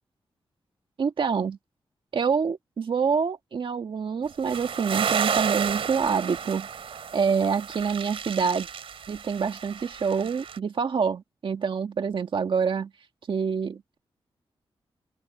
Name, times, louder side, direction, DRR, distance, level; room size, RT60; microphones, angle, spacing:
voice 1, 1.0-1.6 2.1-8.7 9.1-12.9 13.3-14.0, right 6 dB, 65° right, 1.6 m, -26 dB
sound 1, 4.5-10.6, right 7 dB, 80° right, 3.2 m, -31 dB
open air
wide cardioid pair, 90°, 9 cm